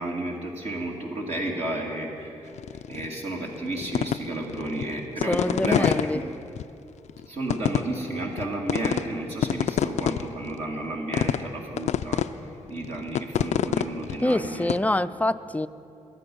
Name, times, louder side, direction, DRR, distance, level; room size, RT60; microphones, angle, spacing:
voice 1, 0.0-2.3 2.9-6.2 7.3-12.2 12.7-14.7, right 1 dB, 55° right, -2 dB, 2.1 m, -32 dB
sound 1, 2.6-3.1 3.5-6.1 6.6-6.7 7.1-7.2 7.5-8.4 8.7-9.0 9.3-10.6 11.1-11.5 11.8-12.3 12.7-14.8, left 10 dB, 70° left, 0.4 m, -26 dB
voice 2, 5.3-6.2 14.2-15.7, left 1 dB, 10° left, 13 dB, 0.5 m, -25 dB
22.0 x 7.9 x 5.4 m, 2.7 s
supercardioid pair, 55°, 12 cm